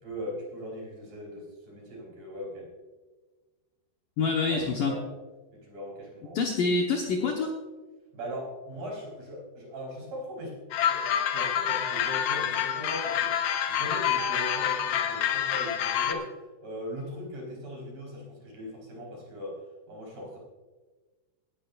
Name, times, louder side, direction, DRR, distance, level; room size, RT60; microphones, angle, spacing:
voice 1, 0.0-2.7 4.5-5.0 5.5-6.4 8.1-16.3 16.6-19.6 19.9-20.4, equal, 40° right, -2 dB, 5.6 m, -39 dB
voice 2, 4.2-4.9 6.3-7.5, left 4 dB, 70° left, 1 dB, 2.1 m, -26 dB
sound 1, 10.7-16.1, left 9 dB, 85° left, 1.9 m, -27 dB
18.5 x 13.5 x 2.5 m, 1.3 s
omnidirectional pair, 5.4 m